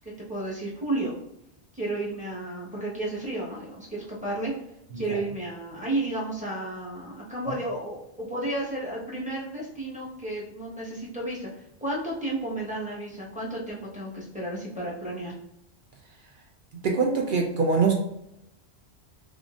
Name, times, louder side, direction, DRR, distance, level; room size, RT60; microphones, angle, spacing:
voice 1, 0.3-1.1 1.7-4.5 4.9-15.3, right 1 dB, 5° right, -6 dB, 1.0 m, -32 dB
voice 2, 16.8-17.9, right 4 dB, 60° right, 1 dB, 0.6 m, -23 dB
3.6 x 3.4 x 2.4 m, 0.80 s
omnidirectional pair, 1.1 m